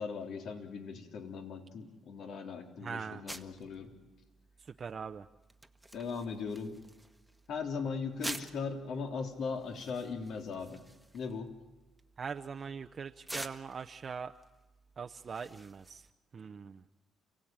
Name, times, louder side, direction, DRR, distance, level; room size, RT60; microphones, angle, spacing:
voice 1, 0.0-3.9 5.9-6.8 7.5-10.8 11.1-11.5, left 5 dB, 65° left, 4 dB, 3.1 m, -39 dB
voice 2, 2.8-3.2 4.8-5.2 12.2-14.3 15.0-16.0 16.3-16.8, right 6 dB, 45° right, 7 dB, 0.8 m, -41 dB
sound 1, 3.3-16.1, right 1 dB, 5° right, 1.4 m, -49 dB
29.5 x 16.5 x 8.9 m, 1.1 s
cardioid pair, 80°, 0 cm